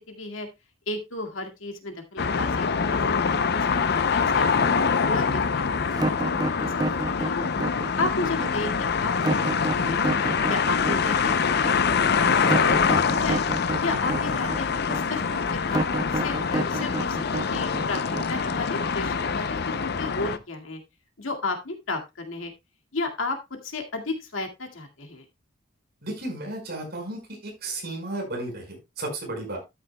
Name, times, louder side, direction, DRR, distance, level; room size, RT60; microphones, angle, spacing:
voice 1, 0.1-0.5 0.9-3.2 3.5-4.5 5.0-7.5 8.0-10.0 10.5-13.4 13.8-20.8 21.2-22.5 22.9-25.2, left 2 dB, 75° left, 4 dB, 2.1 m, -33 dB
sound 1, 2.2-20.4, left 5 dB, 50° left, 0.6 m, -25 dB
sound 2, 5.9-18.8, right 2 dB, 20° right, 0.5 m, -30 dB
voice 2, 26.0-29.6, right 2 dB, 50° right, 1 dB, 5.0 m, -34 dB
12.5 x 9.2 x 2.2 m, 0.23 s
head